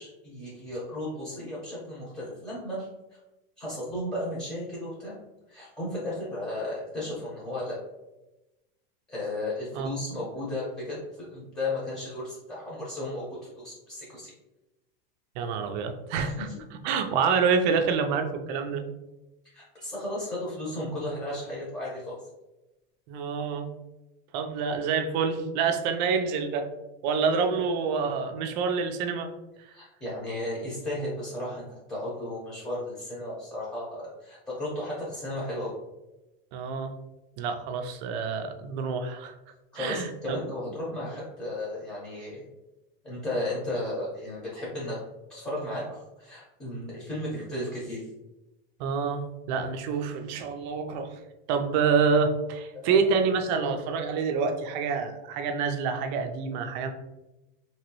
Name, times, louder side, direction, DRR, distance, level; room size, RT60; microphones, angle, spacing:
voice 1, 0.0-2.9 3.6-5.1 5.5-7.8 9.1-14.3 16.2-16.5 19.5-22.2 27.5-27.6 29.7-35.7 39.7-42.4 43.0-45.0 45.3-48.0 52.7-53.0, left 1 dB, 10° left, -7 dB, 1.0 m, -34 dB
voice 2, 15.4-16.5 16.8-18.8 23.1-23.7 24.3-26.7 27.0-29.3 36.5-36.9 37.4-39.3 39.8-40.4 48.8-51.2 51.5-56.9, right 5 dB, 50° right, 6 dB, 0.5 m, -27 dB
2.9 x 2.9 x 2.9 m, 0.99 s
supercardioid pair, 140°, 29 cm